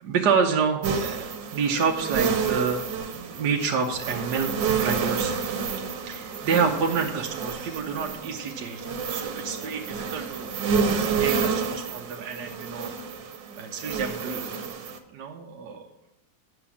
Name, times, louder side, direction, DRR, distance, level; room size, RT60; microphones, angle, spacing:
voice 1, 0.0-2.9 3.1-5.3 6.1-10.8 11.2-12.9 13.6-14.5 15.1-15.9, right 5 dB, 70° right, 1 dB, 1.5 m, -28 dB
sound 1, 0.8-15.0, right 6 dB, 90° right, 1.7 m, -29 dB
9.5 x 6.0 x 7.2 m, 0.88 s
omnidirectional pair, 1.9 m